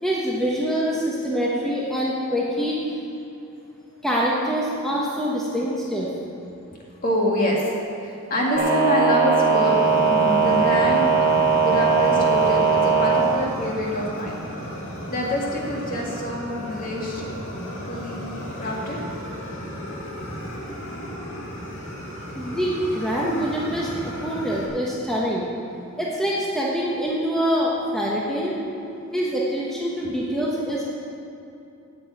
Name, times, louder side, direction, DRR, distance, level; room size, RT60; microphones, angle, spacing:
voice 1, 0.0-2.8 4.0-6.1 22.3-25.5 26.0-28.5 29.1-30.9, equal, ahead, -5 dB, 1.1 m, -25 dB
voice 2, 7.0-7.6 8.0-9.7 10.0-11.3 11.6-14.4 14.7-17.3 17.8-19.0, left 1 dB, 40° left, -3 dB, 2.1 m, -26 dB
sound 1, 8.5-13.3, right 5 dB, 35° right, 1.4 m, -19 dB
Fire, 9.6-24.7, equal, 60° left, 2.1 m, -34 dB
8.9 x 7.8 x 9.1 m, 2.7 s
head